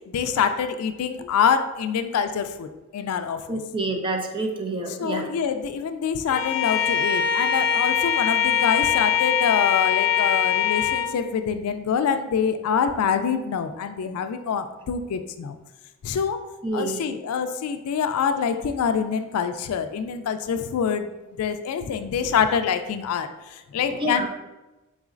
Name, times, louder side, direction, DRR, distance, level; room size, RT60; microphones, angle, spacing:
voice 1, 0.1-3.6 4.9-15.6 16.0-16.4 16.7-21.1 21.4-24.3, left 7 dB, 80° left, 9 dB, 0.3 m, -25 dB
voice 2, 3.5-5.2 16.6-17.0 23.9-24.3, right 2 dB, 25° right, 3 dB, 0.4 m, -28 dB
Bowed string instrument, 6.3-11.2, left 9 dB, 30° left, 0.6 m, -22 dB
4.0 x 3.8 x 2.4 m, 1.1 s
head